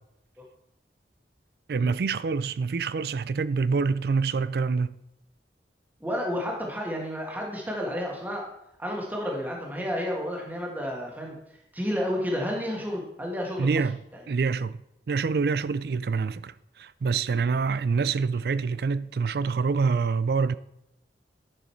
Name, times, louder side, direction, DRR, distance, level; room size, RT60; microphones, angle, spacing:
voice 1, 1.7-5.0 13.6-14.0 14.3-14.8 15.1-20.6, right 5 dB, 60° right, 0.3 m, -26 dB
voice 2, 6.0-8.5 8.8-11.4 11.7-13.8, equal, 10° right, 1.5 m, -31 dB
10.0 x 6.3 x 4.5 m
head